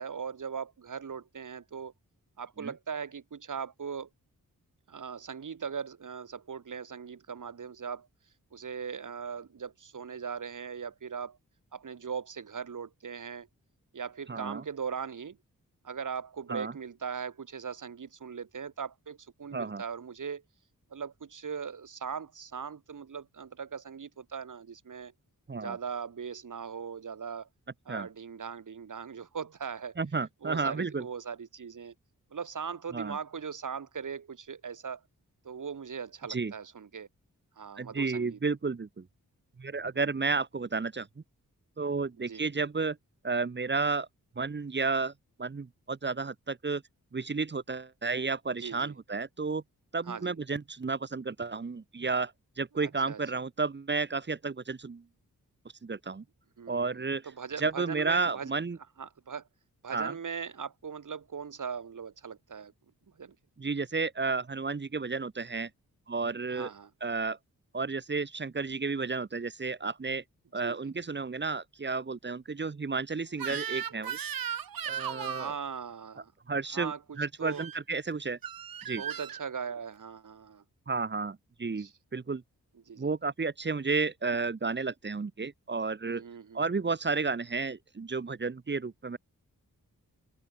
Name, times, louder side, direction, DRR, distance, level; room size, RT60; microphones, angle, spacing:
voice 1, 0.0-1.9 2.4-4.1 4.9-8.1 8.5-11.4 11.7-13.5 13.9-15.4 15.8-20.4 20.9-25.1 25.5-27.5 27.9-30.0 30.4-31.9 32.3-35.0 35.4-37.1 37.6-38.4 39.9-40.1 42.2-42.5 48.6-48.9 50.0-50.4 52.8-53.2 56.6-58.5 59.0-59.5 59.8-62.7 63.2-63.4 66.5-66.9 70.6-70.9 75.2-76.3 76.7-77.7 79.0-80.6 81.8-81.9 82.9-83.1 86.0-86.6, right 6 dB, 60° right, 1.9 m, -39 dB
voice 2, 14.3-14.6 16.5-16.7 19.5-19.8 25.5-25.8 27.9-28.1 30.0-31.1 32.9-33.2 36.3-36.5 37.8-39.1 39.6-41.1 41.8-43.0 43.2-44.1 44.4-45.1 45.4-46.8 47.1-49.6 49.9-52.3 52.6-55.0 55.8-56.2 56.7-57.2 57.6-58.8 59.9-60.1 63.6-65.7 66.1-66.7 67.0-67.4 67.7-70.2 70.5-74.2 74.9-75.5 76.5-76.9 77.2-78.4 78.9-79.0 80.9-82.4 83.0-86.2 86.5-89.2, right 4 dB, 30° right, 0.9 m, -32 dB
Crying sobbing / Screech, 73.4-75.6 77.5-77.8 78.4-79.4, right 8 dB, 80° right, 1.4 m, -36 dB
open air
cardioid pair, 50°, 34 cm